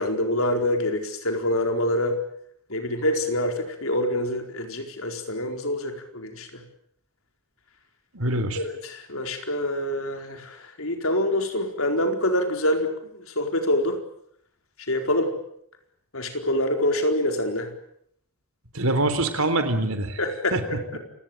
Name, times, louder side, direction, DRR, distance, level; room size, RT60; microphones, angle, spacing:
voice 1, 0.0-2.2 2.7-6.6 8.6-14.0 14.9-15.3 16.1-17.7 20.2-20.6, left 1 dB, 70° left, 5 dB, 4.5 m, -26 dB
voice 2, 8.1-8.6 18.7-20.2 20.5-20.8, right 2 dB, 70° right, 9 dB, 3.8 m, -24 dB
29.0 x 17.5 x 9.1 m, 0.70 s
head